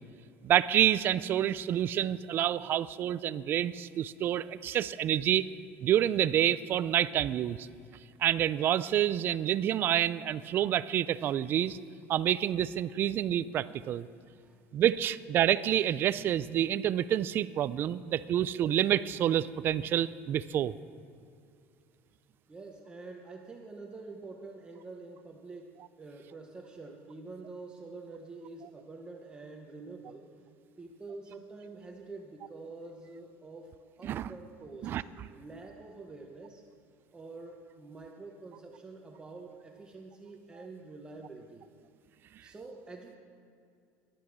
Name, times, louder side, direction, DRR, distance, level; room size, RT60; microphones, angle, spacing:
voice 1, 0.4-5.5 5.8-7.7 8.2-11.8 12.1-14.1 14.7-20.7 34.0-34.3 34.8-35.0, right 11 dB, 35° right, 16 dB, 0.3 m, -28 dB
voice 2, 22.5-30.3 30.8-35.0 35.3-36.6 37.1-41.7 42.4-43.2, right 3 dB, 15° right, 1 dB, 0.8 m, -47 dB
11.5 x 11.5 x 6.0 m, 2.4 s
cardioid pair, 155°, 6 cm